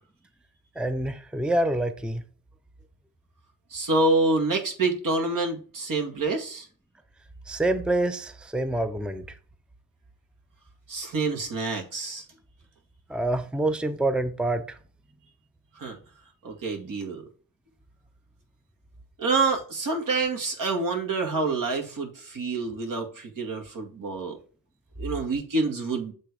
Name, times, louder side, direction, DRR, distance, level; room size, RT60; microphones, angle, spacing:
voice 1, 0.8-2.2 7.5-9.4 13.1-14.8, right 1 dB, 5° right, 0.6 m, -27 dB
voice 2, 3.7-6.7 10.9-12.2 15.8-16.0 16.4-17.2 19.2-24.4 25.0-26.1, right 3 dB, 70° right, 1.9 m, -27 dB
7.5 x 3.4 x 4.9 m
cardioid pair, 85°, 34 cm